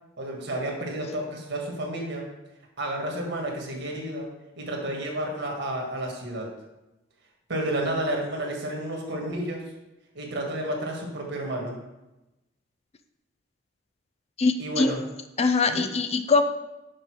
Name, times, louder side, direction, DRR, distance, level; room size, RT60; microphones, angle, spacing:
voice 1, 0.2-2.3 2.8-4.3 4.6-6.5 7.5-9.6 10.2-11.8 14.6-15.0 15.7-15.8, right 1 dB, 60° right, 0 dB, 1.7 m, -31 dB
voice 2, 14.4-14.9 15.4-16.4, left 4 dB, 30° left, 9 dB, 0.4 m, -22 dB
6.7 x 5.2 x 4.7 m, 0.98 s
head